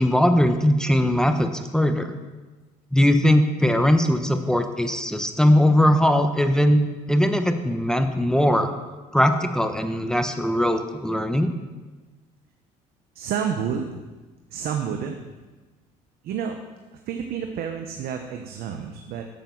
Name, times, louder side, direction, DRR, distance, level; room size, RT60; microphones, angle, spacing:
voice 1, 0.0-2.1 2.9-6.8 7.1-8.7 9.1-11.5, equal, 5° left, 7 dB, 0.9 m, -20 dB
voice 2, 13.1-14.0 14.5-15.2 16.2-16.6 16.9-19.2, right 7 dB, 70° right, 5 dB, 0.9 m, -29 dB
8.9 x 7.9 x 6.2 m, 1.3 s
supercardioid pair, 80°, 17 cm